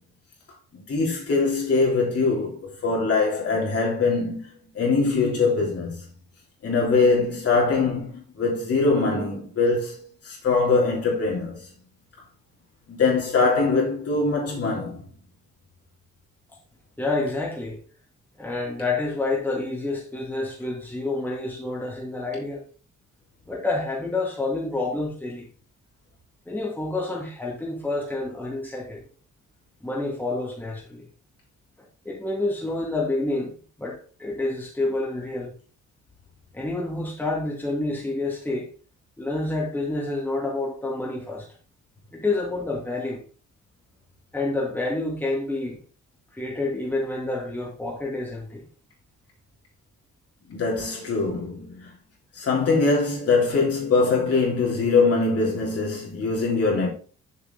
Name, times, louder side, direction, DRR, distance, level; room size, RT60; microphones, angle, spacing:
voice 1, 0.7-6.0 6.6-11.6 12.9-15.0 50.5-51.9 52.3-56.9, left 4 dB, 50° left, 3.3 m, -23 dB
voice 2, 17.0-17.8 18.4-22.6 23.5-25.5 26.5-29.1 29.8-31.1 32.0-33.5 33.8-35.5 36.5-38.7 39.2-41.5 42.1-43.2 44.3-45.8 46.3-48.6, left 2 dB, 5° left, 2.4 m, -28 dB
7.0 x 5.9 x 3.8 m
cardioid pair, 90°, 30 cm